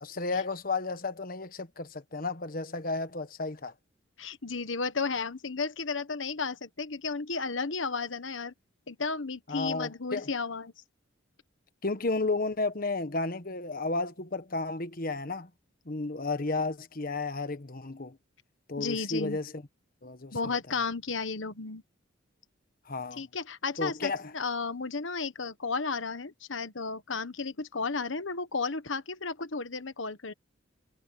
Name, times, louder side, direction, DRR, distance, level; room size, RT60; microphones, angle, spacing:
voice 1, 0.0-3.7 9.5-10.3 11.8-15.5 15.8-18.2 18.7-19.6 20.0-20.6 22.9-23.2 23.8-24.3, left 3 dB, 45° left, 1.3 m, -33 dB
voice 2, 4.2-8.5 8.9-10.7 18.8-19.4 20.3-21.8 23.2-30.3, left 4 dB, 75° left, 1.3 m, -33 dB
head